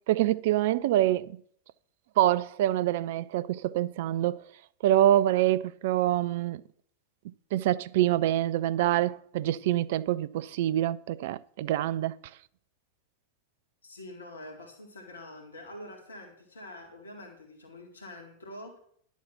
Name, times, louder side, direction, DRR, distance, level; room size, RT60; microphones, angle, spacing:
voice 1, 0.1-1.4 2.2-4.4 4.8-6.6 7.2-12.2, right 13 dB, 50° right, 0.4 m, -26 dB
voice 2, 13.8-18.8, left 1 dB, 70° left, 2.1 m, -45 dB
11.0 x 7.2 x 6.0 m
figure-of-eight pair, 90°, 0 cm